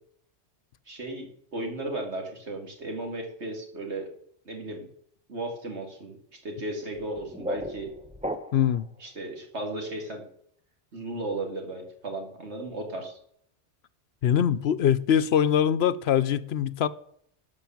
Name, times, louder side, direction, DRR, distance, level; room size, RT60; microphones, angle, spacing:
voice 1, 0.9-4.1 4.5-4.9 5.3-7.9 9.0-10.2 10.9-13.2, right 2 dB, 80° right, 2.6 m, -35 dB
sound 1, 6.9-8.9, equal, 10° right, 0.6 m, -36 dB
voice 2, 8.5-8.9 14.2-16.9, left 9 dB, 70° left, 0.9 m, -23 dB
12.0 x 5.8 x 7.1 m
omnidirectional pair, 1.1 m